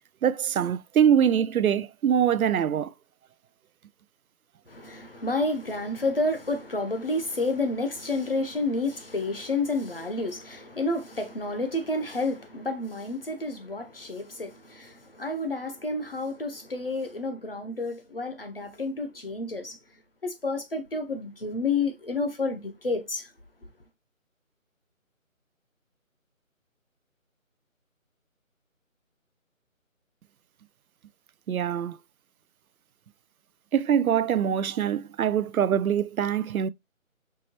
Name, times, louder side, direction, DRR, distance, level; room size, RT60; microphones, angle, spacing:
voice 1, 0.2-2.9 31.5-32.0 33.7-36.7, right 9 dB, 85° right, 0.5 m, -23 dB
voice 2, 4.7-19.8 20.2-23.3, left 2 dB, 45° left, 0.7 m, -30 dB
4.7 x 3.0 x 2.8 m
figure-of-eight pair, 175°, 42 cm